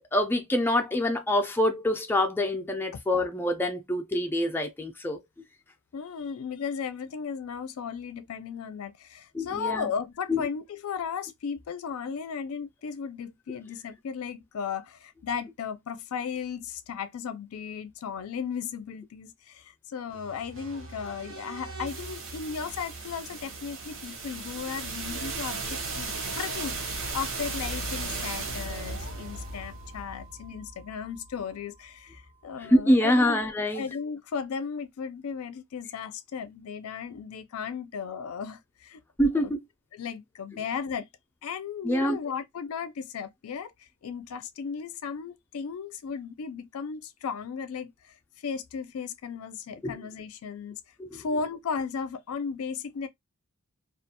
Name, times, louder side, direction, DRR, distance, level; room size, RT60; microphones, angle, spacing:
voice 1, 0.0-5.2 9.3-9.9 10.3-10.4 32.6-33.9 39.2-39.6 41.8-42.2 49.8-49.9 51.0-51.2, left 1 dB, 10° left, 0.3 m, -25 dB
voice 2, 5.9-33.4 33.7-39.0 39.4-39.5 39.9-41.1 41.4-50.8 51.1-53.1, left 6 dB, 90° left, 0.4 m, -35 dB
sound 1, 20.1-32.0, right 3 dB, 65° right, 0.8 m, -37 dB
2.3 x 2.1 x 2.8 m
head